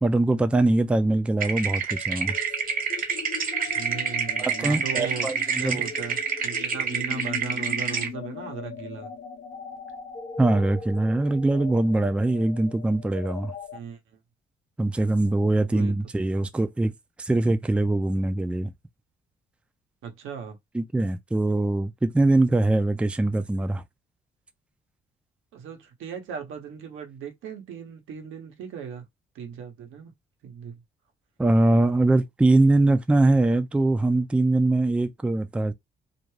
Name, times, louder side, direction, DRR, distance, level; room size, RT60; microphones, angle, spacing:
voice 1, 0.0-2.4 4.4-5.8 10.4-13.5 14.8-16.9 17.2-18.7 20.7-23.8 31.4-35.7, right 2 dB, 5° right, 0.4 m, -22 dB
sound 1, 1.4-8.1, right 6 dB, 45° right, 0.9 m, -28 dB
sound 2, 1.9-13.8, left 6 dB, 45° left, 0.8 m, -40 dB
voice 2, 3.8-9.1 13.7-14.0 15.7-15.9 20.0-20.6 25.5-29.1 29.3-30.1 30.4-30.8, right 7 dB, 85° right, 0.9 m, -37 dB
2.5 x 2.2 x 3.1 m
cardioid pair, 90°, 20 cm